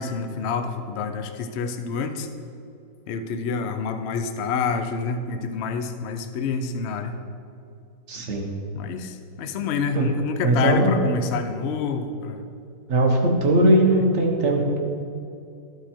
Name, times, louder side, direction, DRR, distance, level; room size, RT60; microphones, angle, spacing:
voice 1, 0.0-2.3 3.1-7.1 8.7-12.4 13.9-14.1, left 5 dB, 85° left, 8 dB, 0.5 m, -28 dB
voice 2, 8.1-8.5 9.9-10.1 10.4-11.0 12.9-14.8, right 1 dB, 45° right, 0 dB, 1.3 m, -19 dB
13.0 x 4.9 x 4.4 m, 2.6 s
omnidirectional pair, 1.9 m